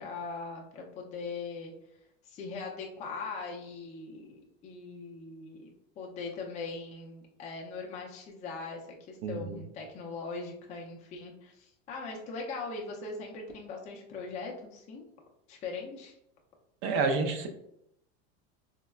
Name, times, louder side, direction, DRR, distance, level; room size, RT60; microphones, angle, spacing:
voice 1, 0.0-1.7 2.2-15.1 15.5-16.2, left 4 dB, 25° left, -1 dB, 0.4 m, -40 dB
voice 2, 9.2-9.6 16.8-17.5, right 4 dB, 60° right, 6 dB, 0.5 m, -29 dB
3.4 x 2.0 x 2.2 m, 0.78 s
supercardioid pair, 135°, 32 cm